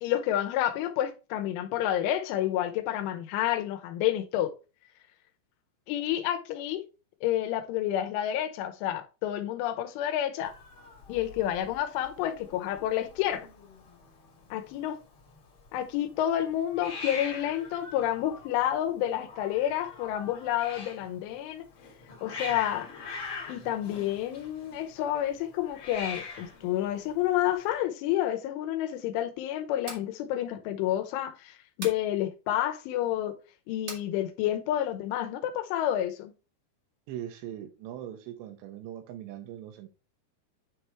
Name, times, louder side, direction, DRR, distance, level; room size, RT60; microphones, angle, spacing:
voice 1, 0.0-4.5 5.9-6.8 7.2-10.5 11.1-13.5 14.5-15.0 15.7-21.7 22.2-22.9 23.5-33.4 33.7-36.3, left 12 dB, 90° left, 3.4 m, -29 dB
Hiss, 10.4-27.8, left 4 dB, 55° left, 1.6 m, -44 dB
sound 1, 29.6-30.1 31.8-32.1 33.9-34.1, right 3 dB, 65° right, 1.1 m, -40 dB
voice 2, 37.1-39.9, right 11 dB, 80° right, 2.9 m, -40 dB
9.6 x 3.4 x 4.4 m
omnidirectional pair, 5.4 m